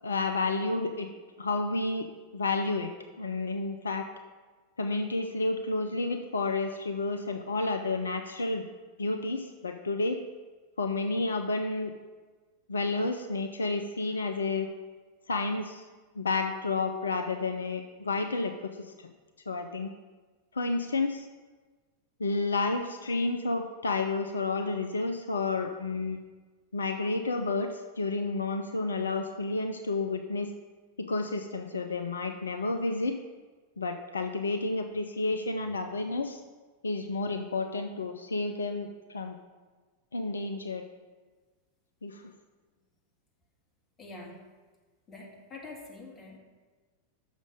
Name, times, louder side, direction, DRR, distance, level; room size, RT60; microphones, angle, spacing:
voice 1, 0.0-1.1 1.4-2.1 2.3-2.9 3.2-4.1 4.8-8.7 9.0-10.2 10.8-11.9 12.7-14.7 15.3-15.9 16.2-19.1 19.5-19.9 20.5-21.3 22.2-26.2 26.7-30.5 31.0-33.2 33.8-36.4 36.8-39.4 40.1-40.9 42.0-42.3, left 3 dB, 75° left, 6 dB, 0.4 m, -30 dB
voice 2, 44.0-44.5 45.1-46.4, left 2 dB, 20° left, -1 dB, 1.7 m, -45 dB
6.3 x 5.1 x 6.4 m, 1.3 s
figure-of-eight pair, 90°, 0 cm